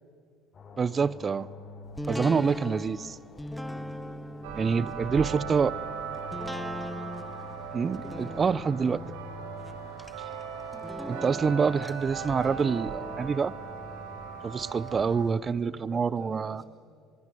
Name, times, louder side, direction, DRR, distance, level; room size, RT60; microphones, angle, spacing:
sound 1, 0.5-15.5, left 4 dB, 40° left, 5.9 m, -48 dB
voice 1, 0.8-1.5 2.1-3.2 4.6-5.7 7.7-9.0 11.1-13.6 14.4-16.6, right 5 dB, 35° right, 21 dB, 0.7 m, -26 dB
sound 2, 2.0-14.9 15.3-15.4, left 1 dB, 5° left, 1.1 m, -41 dB
sound 3, 4.4-15.3, right 7 dB, 75° right, 2.9 m, -39 dB
voice 2, 4.5-6.4 7.9-9.0 15.3-16.7, left 2 dB, 20° left, 5 dB, 5.5 m, -47 dB
24.0 x 22.5 x 9.3 m, 2.2 s
hypercardioid pair, 65°, 0 cm